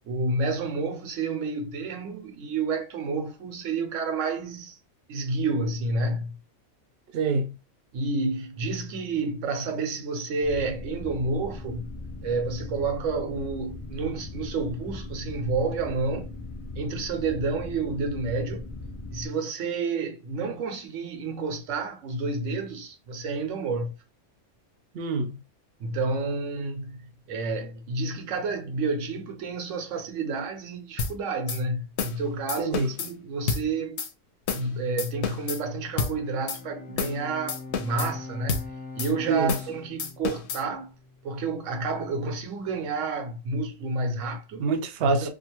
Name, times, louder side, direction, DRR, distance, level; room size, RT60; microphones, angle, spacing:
voice 1, 0.0-4.8 5.1-6.4 7.9-11.9 12.2-16.3 16.7-18.7 19.1-23.9 25.8-34.0 34.5-38.7 39.0-40.9 41.2-44.7 45.0-45.3, right 3 dB, 90° right, 1.0 m, -30 dB
voice 2, 7.1-7.5 24.9-25.4 32.6-32.9 39.2-39.5 44.6-45.3, right 4 dB, 65° right, 0.7 m, -25 dB
sound 1, 10.4-19.3, left 2 dB, 50° left, 0.4 m, -39 dB
sound 2, 31.0-31.1 31.5-31.6 32.0-32.2 32.5-33.1 33.5-33.6 34.0-34.1 34.5-34.7 35.0-35.6 36.0-36.1 36.5-36.6 37.0-37.2 37.5-38.1 38.5-38.7 39.0-39.1 39.5-39.7 40.0-40.6, left 6 dB, 70° left, 0.8 m, -29 dB
Bowed string instrument, 35.9-41.4, left 3 dB, 25° left, 1.0 m, -43 dB
2.5 x 2.4 x 2.9 m
omnidirectional pair, 1.3 m